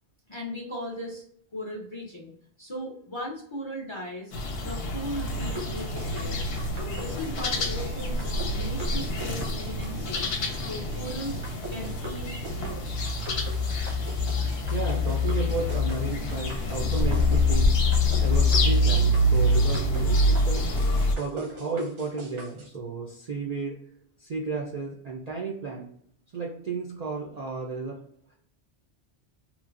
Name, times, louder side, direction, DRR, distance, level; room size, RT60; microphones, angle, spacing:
voice 1, 0.3-1.2 1.5-2.3 2.6-4.3 4.6-6.4 6.7-10.3 10.6-11.4 11.7-12.3 12.5-13.0, equal, 35° left, -3 dB, 0.5 m, -37 dB
sound 1, 4.3-21.1, left 1 dB, 65° left, 0.8 m, -25 dB
sound 2, 5.5-22.7, equal, 85° right, 1.2 m, -43 dB
voice 2, 14.3-17.7 18.2-20.8 21.1-23.8 24.2-25.9 26.3-28.0 28.3-28.4, right 4 dB, 55° right, -1 dB, 0.4 m, -33 dB
3.1 x 2.1 x 2.4 m, 0.66 s
omnidirectional pair, 1.2 m